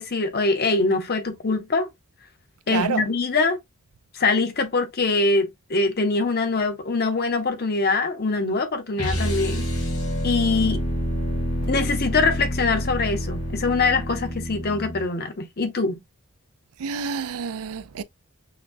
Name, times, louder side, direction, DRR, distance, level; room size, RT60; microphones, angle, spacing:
voice 1, 0.0-1.9 2.7-3.6 4.1-9.7 10.2-10.8 11.7-16.0, left 3 dB, 45° left, 0.8 m, -23 dB
voice 2, 2.7-3.0 16.8-18.0, right 6 dB, 70° right, 0.4 m, -28 dB
sound 1, 8.9-15.1, equal, 85° left, 2.5 m, -27 dB
5.7 x 2.3 x 2.5 m
head